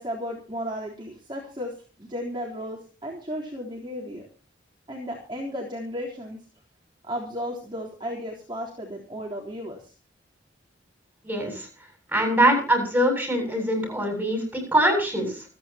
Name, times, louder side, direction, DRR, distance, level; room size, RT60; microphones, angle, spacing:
voice 1, 0.0-4.3 4.9-6.4 7.1-9.9, equal, 25° right, -3 dB, 3.6 m, -34 dB
voice 2, 11.2-11.7 12.1-15.4, right 1 dB, 10° right, 4 dB, 7.5 m, -23 dB
28.0 x 9.6 x 2.9 m, 0.36 s
head